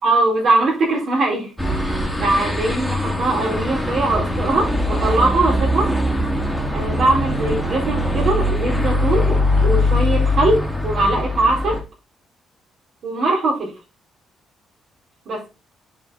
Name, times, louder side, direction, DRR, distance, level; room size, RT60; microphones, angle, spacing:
voice 1, 0.0-5.9 6.7-11.8 13.0-13.7 15.3-15.4, right 2 dB, 65° right, 4.2 m, -21 dB
sound 1, 1.6-11.8, left 1 dB, ahead, 2.2 m, -21 dB
8.2 x 5.1 x 4.0 m
cardioid pair, 90°, 0 cm